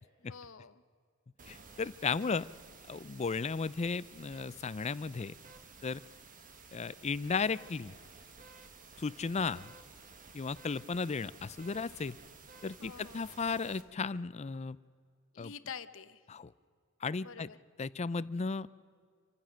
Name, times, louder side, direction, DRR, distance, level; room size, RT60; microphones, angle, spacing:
voice 1, 0.3-0.8 12.8-13.3 15.3-16.2 17.2-17.6, left 6 dB, 70° left, 13 dB, 0.8 m, -47 dB
sound 1, 1.4-13.8, right 4 dB, 40° right, 1.5 m, -54 dB
voice 2, 1.5-2.5 2.9-5.3 5.8-6.0 6.7-7.9 9.0-9.7 10.3-12.2 12.6-14.8 15.4-15.5 16.3-16.5 17.0-17.5 17.8-18.7, left 4 dB, 30° left, 18 dB, 0.4 m, -35 dB
27.0 x 15.0 x 6.4 m, 2.1 s
head